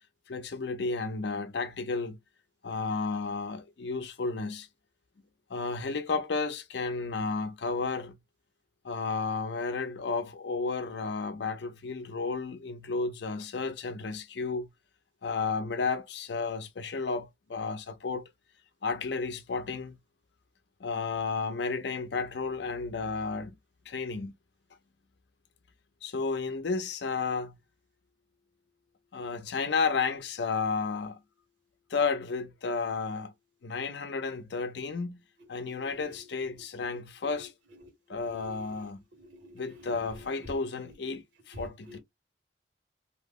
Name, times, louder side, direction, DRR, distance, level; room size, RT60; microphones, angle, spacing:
voice 1, 0.3-2.2 2.6-4.7 5.5-8.2 8.8-14.7 15.2-18.2 18.8-20.0 20.8-23.6 23.9-24.3 26.0-27.5 29.1-31.2 31.9-33.3 33.6-35.2 35.5-37.5 38.1-39.0 39.5-42.0, left 4 dB, 70° left, 0.5 m, -32 dB
voice 2, 35.8-36.1 36.8-37.0 38.1-38.8 39.2-40.0 41.5-42.0, left 1 dB, 80° right, 1.4 m, -48 dB
2.7 x 2.0 x 3.5 m
head